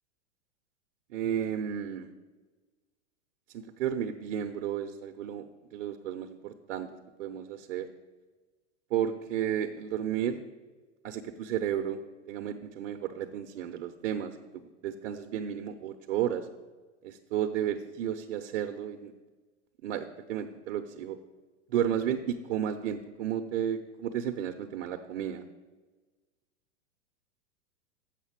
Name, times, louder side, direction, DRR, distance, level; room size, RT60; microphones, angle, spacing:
voice 1, 1.1-2.1 3.5-5.4 5.7-6.9 7.2-7.9 8.9-10.4 11.0-12.0 12.3-16.5 17.0-19.1 19.8-21.2 21.7-25.4, right 9 dB, 65° right, 5 dB, 0.7 m, -33 dB
7.4 x 5.7 x 7.2 m, 1.3 s
hypercardioid pair, 120°, 37 cm